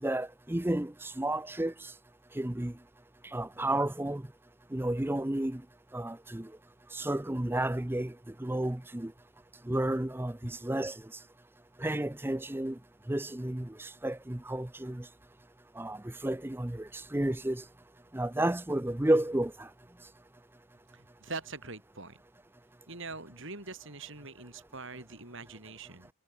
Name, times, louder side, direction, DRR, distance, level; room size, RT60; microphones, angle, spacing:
voice 1, 0.0-1.9 2.3-2.7 3.3-4.3 4.7-5.6 5.9-6.5 6.9-9.1 9.6-11.0 11.8-12.8 13.1-15.1 15.8-17.6 18.1-19.7, right 1 dB, 10° right, 0.6 m, -32 dB
voice 2, 20.9-22.2 22.9-26.1, right 3 dB, 55° right, 6.4 m, -43 dB
head